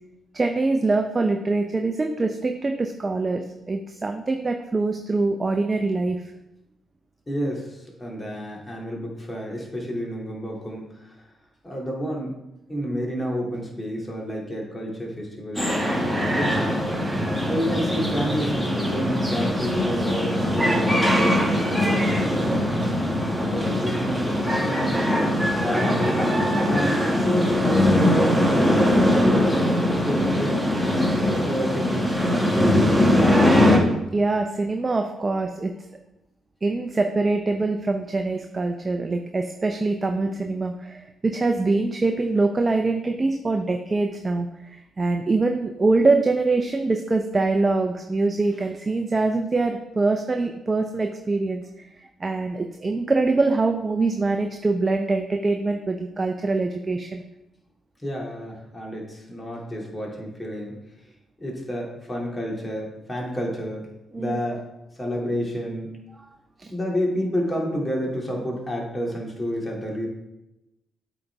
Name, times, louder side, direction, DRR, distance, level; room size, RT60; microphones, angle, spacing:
voice 1, 0.3-6.2 34.1-35.7 36.6-51.6 52.0-57.2 64.1-64.4 66.6-66.7, right 3 dB, 35° right, 5 dB, 0.6 m, -24 dB
voice 2, 7.3-11.2 11.6-12.3 12.7-15.9 16.3-16.7 17.5-22.7 23.5-24.9 25.6-26.3 26.6-28.7 29.1-30.6 31.2-33.3 58.0-60.8 61.4-63.9 64.2-64.6 65.0-65.9 66.7-70.1, equal, 25° left, -2 dB, 2.5 m, -29 dB
sound 1, 15.5-33.8, left 1 dB, 5° left, 1.9 m, -21 dB
8.4 x 4.1 x 3.5 m, 0.93 s
hypercardioid pair, 50°, 0 cm